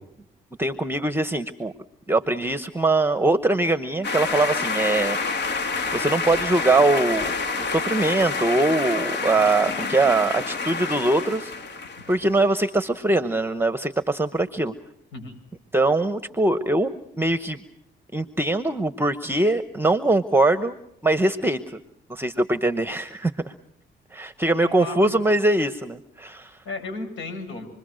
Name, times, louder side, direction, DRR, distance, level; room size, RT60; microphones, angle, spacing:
voice 1, 0.6-1.7 2.1-5.6 5.9-7.3 7.6-11.8 12.1-14.7 15.7-17.6 18.1-21.8 22.1-23.5 24.1-26.6, right 2 dB, 10° right, 11 dB, 1.0 m, -22 dB
sound 1, 4.0-12.3, left 4 dB, 60° left, 2.4 m, -28 dB
voice 2, 24.5-25.1 26.6-27.7, left 3 dB, 75° left, 5 dB, 7.8 m, -34 dB
27.5 x 22.0 x 6.4 m, 0.78 s
cardioid pair, 90°, 20 cm